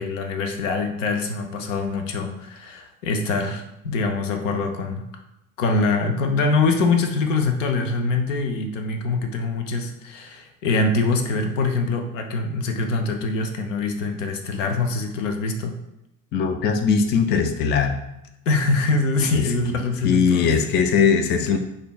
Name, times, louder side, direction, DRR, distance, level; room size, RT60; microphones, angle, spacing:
voice 1, 0.0-5.0 5.6-15.8 18.5-20.6, left 3 dB, 70° left, 5 dB, 0.6 m, -24 dB
voice 2, 16.3-18.0 20.0-21.6, left 6 dB, 30° left, 6 dB, 0.4 m, -20 dB
5.0 x 2.7 x 2.2 m, 0.86 s
figure-of-eight pair, 60°, 39 cm